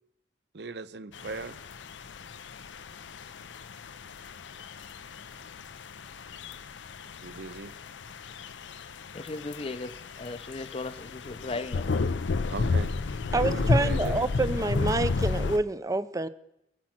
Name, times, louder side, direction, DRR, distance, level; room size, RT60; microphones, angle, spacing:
voice 1, 0.5-1.6 7.2-7.7 12.5-12.9 13.4-14.3, right 3 dB, 65° right, 0.6 m, -38 dB
sound 1, 1.1-15.6, left 3 dB, 90° left, 0.5 m, -32 dB
voice 2, 9.1-12.1, left 3 dB, 35° left, 0.6 m, -37 dB
voice 3, 13.3-16.3, right 2 dB, 20° right, 0.5 m, -27 dB
22.0 x 7.4 x 6.0 m
head